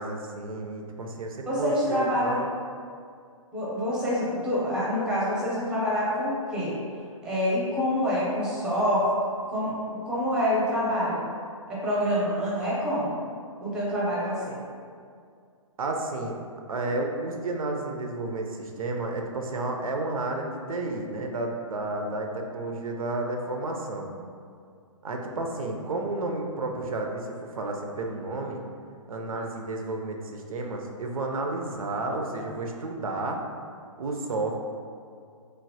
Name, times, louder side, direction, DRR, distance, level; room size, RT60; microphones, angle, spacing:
voice 1, 0.0-2.5 15.8-16.4 16.7-24.1 25.0-28.6 29.1-33.4 34.0-34.6, right 2 dB, 80° right, 2 dB, 0.4 m, -31 dB
voice 2, 1.5-2.4 3.5-6.8 7.2-9.0 9.5-9.7 10.0-11.2 11.7-13.2 13.6-14.6, equal, 5° right, -8 dB, 0.6 m, -26 dB
3.1 x 2.0 x 2.6 m, 2.2 s
hypercardioid pair, 135°, 18 cm